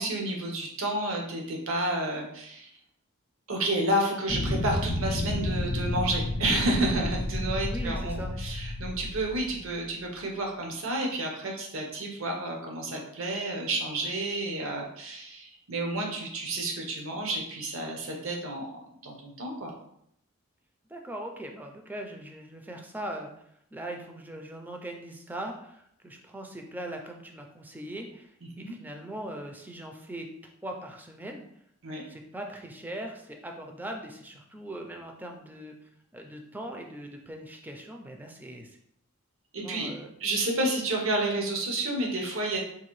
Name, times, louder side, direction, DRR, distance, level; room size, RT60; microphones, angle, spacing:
voice 1, 0.0-2.7 3.5-19.7 28.5-28.7 31.8-32.0 39.5-39.9 40.2-42.6, right 1 dB, 80° right, 1 dB, 0.8 m, -30 dB
sound 1, 4.3-10.0, left 1 dB, 50° left, 0.5 m, -31 dB
voice 2, 7.3-8.3 20.9-23.3 23.7-30.3 30.6-31.5 32.0-35.8 36.1-38.8 39.6-40.1, right 1 dB, 10° right, 2 dB, 0.4 m, -40 dB
3.8 x 2.5 x 3.0 m, 0.72 s
head